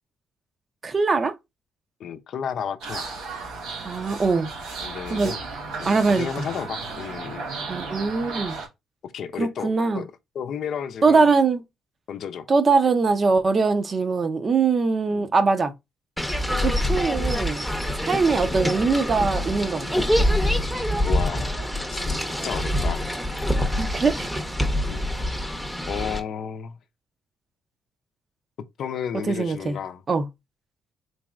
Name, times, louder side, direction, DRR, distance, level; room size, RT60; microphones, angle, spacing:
voice 1, 0.8-1.3 3.8-4.5 5.1-5.3 5.9-6.5 7.7-8.6 9.4-10.0 11.0-11.6 12.5-15.7 16.6-17.7 18.1-20.0 23.8-24.4 29.3-29.8 30.1-30.3, right 4 dB, 40° right, 0.6 m, -22 dB
voice 2, 2.0-3.1 4.8-5.4 5.8-7.5 9.0-10.1 10.3-11.3 12.1-12.5 15.1-15.3 18.3-18.6 20.2-20.7 21.1-21.6 21.9-23.1 24.9-25.0 25.9-26.8 28.8-30.0, left 8 dB, 70° left, 0.5 m, -33 dB
sound 1, 2.8-8.7, right 4 dB, 90° right, 1.0 m, -34 dB
sound 2, 16.2-26.2, left 1 dB, 5° right, 0.7 m, -25 dB
4.0 x 3.0 x 2.4 m
cardioid pair, 90°, 0 cm